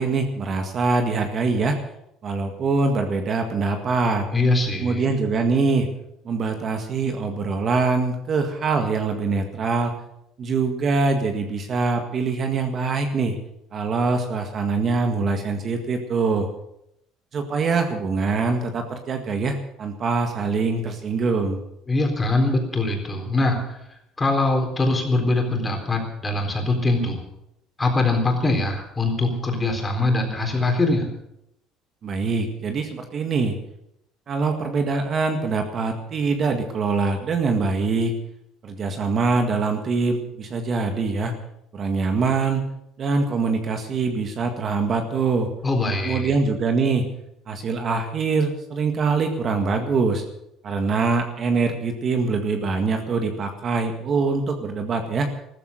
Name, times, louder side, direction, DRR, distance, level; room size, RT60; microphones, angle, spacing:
voice 1, 0.0-1.8 2.2-4.3 4.8-5.9 6.3-9.9 10.4-13.4 13.7-16.5 17.3-21.6 32.0-33.6 34.3-38.2 38.6-41.3 41.7-42.6 43.0-45.5 46.0-47.1 47.5-50.2 50.6-55.3, right 4 dB, 35° right, 5 dB, 1.8 m, -23 dB
voice 2, 4.3-5.2 21.9-23.8 24.2-27.2 27.8-31.1 45.6-46.3, left 2 dB, 15° left, 3 dB, 3.9 m, -22 dB
14.5 x 14.0 x 6.6 m, 0.79 s
cardioid pair, 135°, 0 cm